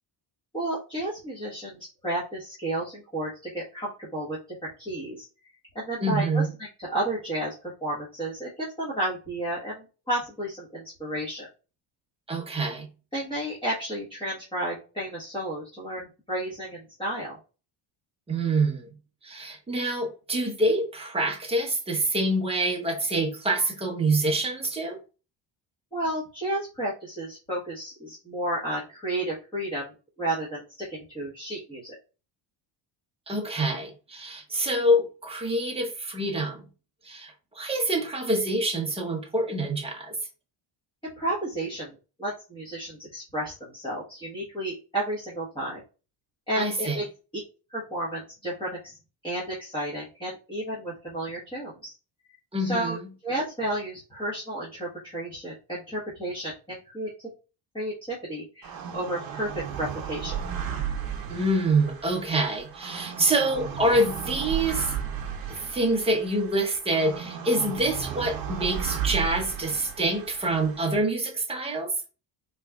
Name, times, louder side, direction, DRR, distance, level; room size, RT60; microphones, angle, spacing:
voice 1, 0.5-5.2 5.7-6.5 6.8-11.5 13.1-17.4 25.9-31.9 41.0-45.8 46.5-47.0 47.7-49.0 49.2-51.9 52.6-53.0 53.2-57.1 57.7-59.5 59.8-60.4, right 1 dB, 10° left, 1.3 m, -32 dB
voice 2, 6.0-6.5 12.3-12.9 18.3-18.9 19.2-25.0 33.3-36.6 37.0-40.1 46.5-47.0 52.5-53.0 61.3-64.9 65.5-71.9, right 1 dB, 15° right, 0.9 m, -26 dB
sound 1, 58.6-71.0, right 8 dB, 55° right, 0.9 m, -35 dB
4.1 x 3.2 x 2.4 m
cardioid pair, 140°, 44 cm